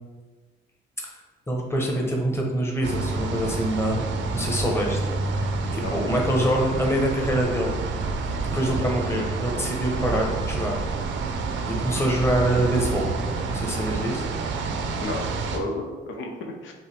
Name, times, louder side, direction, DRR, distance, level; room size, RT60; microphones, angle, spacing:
voice 1, 1.5-4.1 4.3-5.0 5.3-7.8 8.5-10.8 11.7-13.1 13.5-14.3, right 1 dB, 10° left, -1 dB, 1.0 m, -25 dB
sound 1, 2.8-15.6, right 4 dB, 70° right, 0.6 m, -28 dB
voice 2, 5.7-6.0 15.0-16.7, left 2 dB, 75° left, 2 dB, 0.7 m, -32 dB
5.5 x 2.7 x 3.5 m, 1.3 s
cardioid pair, 90°, 20 cm